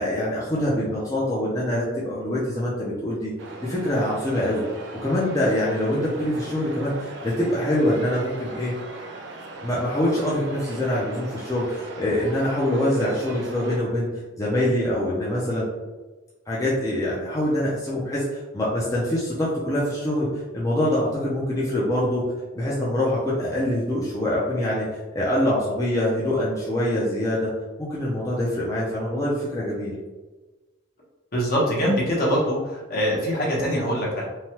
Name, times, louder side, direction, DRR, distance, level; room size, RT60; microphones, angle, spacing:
voice 1, 0.0-3.3 3.6-4.6 5.0-8.7 9.6-14.1 14.4-15.7 16.5-20.3 20.5-22.2 22.6-24.9 25.1-27.5 27.8-29.9, left 1 dB, 15° left, -7 dB, 0.5 m, -24 dB
sound 1, 3.4-13.8, right 2 dB, 60° right, 0.4 m, -39 dB
voice 2, 31.3-34.3, equal, 50° left, -4 dB, 0.9 m, -23 dB
3.1 x 2.2 x 2.8 m, 1.2 s
head